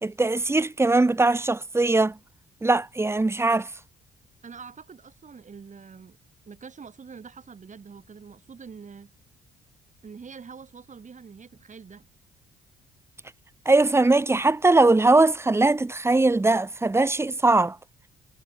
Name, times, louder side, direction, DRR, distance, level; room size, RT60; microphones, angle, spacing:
voice 1, 0.0-2.2 2.6-3.6 13.7-17.8, right 2 dB, 15° right, 0.8 m, -20 dB
voice 2, 4.4-6.2 6.5-9.1 10.0-12.1, right 6 dB, 40° right, 4.0 m, -45 dB
cardioid pair, 90°, 20 cm